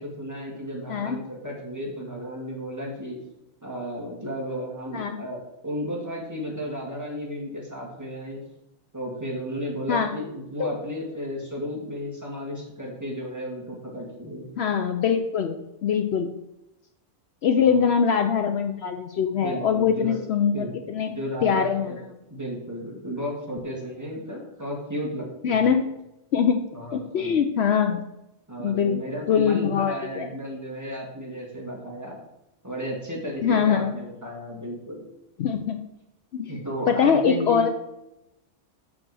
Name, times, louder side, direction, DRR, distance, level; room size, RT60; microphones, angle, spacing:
voice 1, 0.0-3.2 3.6-8.4 8.9-14.5 17.6-17.9 19.4-20.2 20.5-22.0 22.3-25.7 26.7-27.4 28.5-32.2 32.6-35.0 36.5-37.6, equal, 15° right, -3 dB, 2.2 m, -33 dB
voice 2, 14.6-16.3 17.4-21.1 21.4-22.0 25.4-25.9 26.3-26.6 26.9-28.0 28.6-29.0 29.3-30.3 33.4-33.9 35.4-35.8 36.3-36.5 36.9-37.7, left 7 dB, 65° left, 6 dB, 0.8 m, -23 dB
6.3 x 6.1 x 6.2 m, 0.89 s
omnidirectional pair, 1.3 m